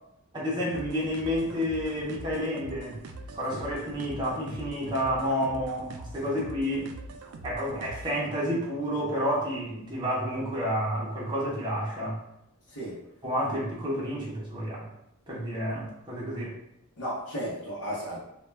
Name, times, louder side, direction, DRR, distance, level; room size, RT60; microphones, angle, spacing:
voice 1, 0.3-3.0 3.3-6.9 7.4-12.2 13.2-14.9 15.3-16.6, equal, 20° right, -6 dB, 0.5 m, -30 dB
sound 1, 0.7-8.3, right 2 dB, 85° right, 0.3 m, -43 dB
voice 2, 12.7-13.0 17.0-18.2, equal, 85° left, -8 dB, 0.7 m, -35 dB
2.2 x 2.1 x 3.1 m, 0.80 s
head